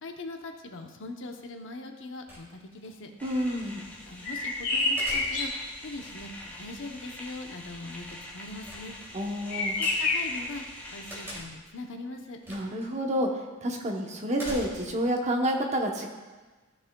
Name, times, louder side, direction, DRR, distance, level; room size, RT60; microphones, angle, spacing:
voice 1, 0.0-3.1 4.1-5.5 5.8-8.9 9.8-10.6 10.9-12.4, left 2 dB, 60° left, 4 dB, 0.8 m, -41 dB
sound 1, 2.3-2.9 5.0-5.7 8.6-9.4 11.1-11.7 12.4-12.9 13.2-13.3 14.3-15.1, equal, 10° right, 2.6 m, -42 dB
sound 2, 3.2-11.4, left 1 dB, 5° left, 1.2 m, -45 dB
voice 2, 3.2-3.9 9.1-9.8 12.5-13.3 13.6-16.1, equal, 30° right, 1 dB, 0.9 m, -29 dB
sound 3, 4.2-5.7 9.5-10.4, left 2 dB, 85° left, 2.7 m, -28 dB
14.5 x 6.0 x 2.3 m, 1.3 s
head